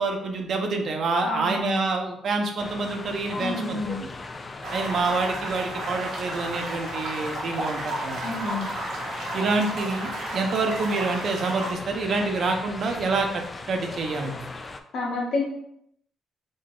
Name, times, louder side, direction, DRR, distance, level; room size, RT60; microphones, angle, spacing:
voice 1, 0.0-4.1 4.7-8.2 9.3-14.5, right 3 dB, 55° right, 3 dB, 0.6 m, -27 dB
voice 2, 1.2-1.8 3.4-4.0 8.2-8.6 14.9-15.4, left 3 dB, 70° left, -4 dB, 1.4 m, -29 dB
sound 1, 2.6-14.8, left 3 dB, 30° left, 0.3 m, -38 dB
sound 2, 4.6-11.7, right 1 dB, 85° right, 1.1 m, -33 dB
3.8 x 2.1 x 3.7 m, 0.76 s
cardioid pair, 90°, 0 cm